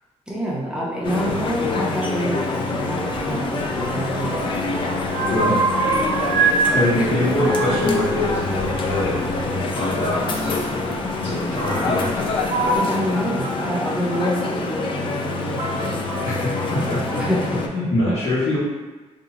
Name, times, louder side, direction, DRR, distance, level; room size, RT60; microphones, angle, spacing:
voice 1, 0.3-4.4 7.0-7.1 12.6-16.0 17.2-17.7 18.0-18.1, equal, 5° right, -5 dB, 0.6 m, -27 dB
sound 1, 1.0-17.7, left 3 dB, 45° left, 0.4 m, -26 dB
sound 2, 2.8-17.3, equal, 30° left, 0.9 m, -34 dB
sound 3, 3.6-4.5 4.8-6.6 6.9-9.4 10.5-10.6 11.5-12.1 12.4-12.8, right 3 dB, 85° right, 0.7 m, -24 dB
voice 2, 6.7-9.2 9.4-12.3 16.2-16.4 16.7-17.2 17.5-18.6, left 1 dB, 65° left, -11 dB, 1.4 m, -24 dB
2.8 x 2.1 x 3.7 m, 1.2 s
cardioid pair, 135°, 12 cm